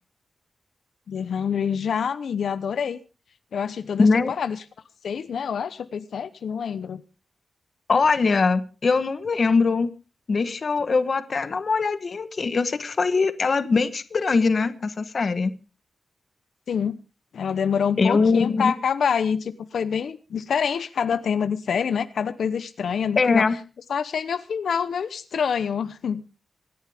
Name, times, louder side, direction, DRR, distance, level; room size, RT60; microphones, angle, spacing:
voice 1, 1.1-3.0 3.5-4.6 5.0-7.0 16.7-17.0 17.3-23.5 23.9-26.2, left 7 dB, 85° left, 12 dB, 0.8 m, -26 dB
voice 2, 4.0-4.3 7.9-9.9 10.3-15.5 18.0-18.7 23.2-23.6, left 4 dB, 45° left, 11 dB, 1.1 m, -21 dB
25.5 x 11.0 x 3.5 m, 0.34 s
wide cardioid pair, 160°, 0 cm